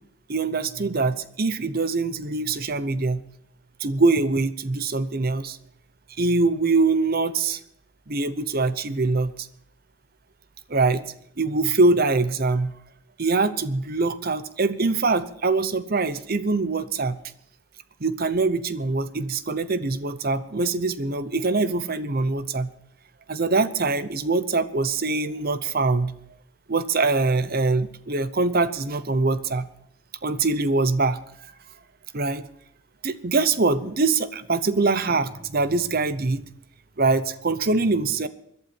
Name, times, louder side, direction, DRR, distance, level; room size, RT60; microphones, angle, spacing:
voice 1, 0.3-3.2 3.8-5.6 6.2-7.6 8.1-9.5 10.7-11.0 11.4-12.8 13.2-17.2 18.0-22.7 23.3-26.1 26.7-29.7 30.2-31.2 32.1-32.5 33.0-36.4 37.0-38.3, right 3 dB, 45° right, 14 dB, 0.8 m, -23 dB
21.0 x 12.0 x 4.4 m, 0.73 s
head